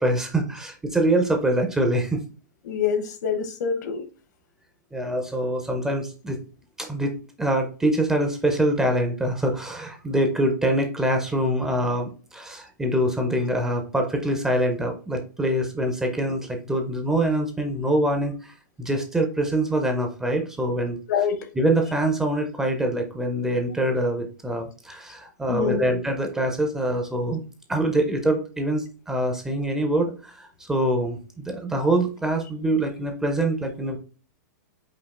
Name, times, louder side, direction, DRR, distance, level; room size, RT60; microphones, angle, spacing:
voice 1, 0.0-2.2 4.9-6.4 6.8-21.0 21.6-27.4 27.7-34.0, right 1 dB, 5° right, 3 dB, 0.5 m, -24 dB
voice 2, 2.6-4.0 21.1-21.5 25.5-26.0, left 7 dB, 65° left, 9 dB, 0.9 m, -26 dB
5.2 x 2.6 x 3.5 m, 0.36 s
supercardioid pair, 165°, 10 cm